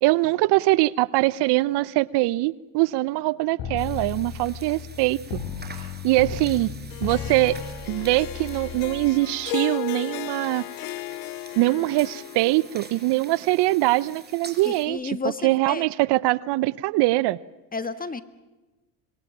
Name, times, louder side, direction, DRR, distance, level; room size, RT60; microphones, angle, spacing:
voice 1, 0.0-5.4 5.7-6.7 7.0-7.6 7.9-10.6 11.5-15.2 15.4-17.4, right 19 dB, 55° right, 20 dB, 0.7 m, -23 dB
sound 1, 3.6-9.1, left 7 dB, 60° left, 3.4 m, -35 dB
sound 2, 3.8-14.8, right 4 dB, 20° right, 4.8 m, -47 dB
Harp, 6.9-13.3, left 19 dB, 80° left, 0.8 m, -36 dB
voice 2, 14.6-15.8 17.7-18.2, left 4 dB, 15° left, 12 dB, 1.6 m, -31 dB
26.5 x 22.5 x 7.3 m, 1.1 s
supercardioid pair, 95°, 48 cm